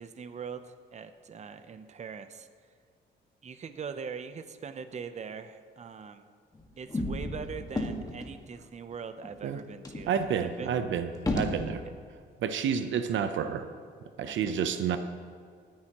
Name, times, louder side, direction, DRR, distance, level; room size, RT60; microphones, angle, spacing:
voice 1, 0.0-2.5 3.4-6.2 6.8-10.7 14.2-14.5, right 6 dB, 35° right, 10 dB, 0.7 m, -42 dB
sound 1, 6.5-8.4 8.9-9.0 9.2-9.4 9.8-11.8, left 1 dB, 20° left, 1.7 m, -33 dB
voice 2, 10.1-11.8 12.4-13.7 14.2-15.0, right 7 dB, 70° right, 9 dB, 0.7 m, -29 dB
20.0 x 10.5 x 3.0 m, 2.1 s
cardioid pair, 90°, 20 cm